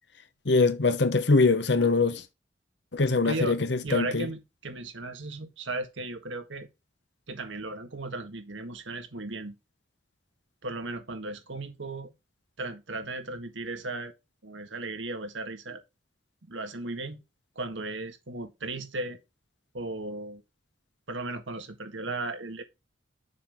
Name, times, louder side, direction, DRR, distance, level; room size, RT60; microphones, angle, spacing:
voice 1, 0.5-2.2 2.9-4.3, left 3 dB, 65° left, 1.0 m, -23 dB
voice 2, 3.2-3.6 3.8-6.7 7.3-9.6 10.6-12.1 12.6-14.1 14.4-15.8 16.5-17.2 17.5-19.2 19.7-20.4 21.1-22.6, right 2 dB, 85° right, 1.6 m, -36 dB
7.2 x 5.9 x 3.5 m
head